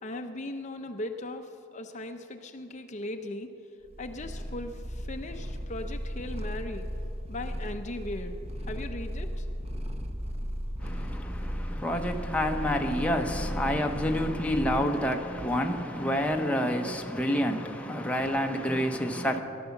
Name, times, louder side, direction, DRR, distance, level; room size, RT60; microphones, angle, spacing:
voice 1, 0.0-3.5 4.0-6.9 7.3-8.4 8.7-9.5, left 1 dB, 35° left, 0.7 m, -38 dB
Purr, 3.9-15.2, equal, 30° right, 0.9 m, -36 dB
voice 2, 10.8-19.4, equal, 5° left, 0.8 m, -28 dB
17.0 x 12.0 x 7.1 m
head